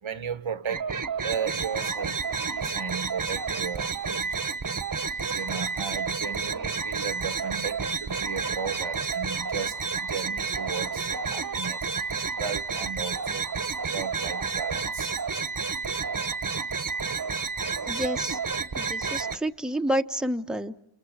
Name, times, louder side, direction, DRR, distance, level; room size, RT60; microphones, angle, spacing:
voice 1, 0.0-0.9 1.2-4.5 5.3-11.9 12.4-13.5 13.9-15.1, right 6 dB, 70° right, 1.3 m, -35 dB
sound 1, 0.6-19.4, right 5 dB, 40° right, 1.2 m, -30 dB
voice 2, 17.9-18.4 18.7-20.8, equal, ahead, 1.2 m, -29 dB
29.0 x 28.0 x 6.5 m
cardioid pair, 55°, 49 cm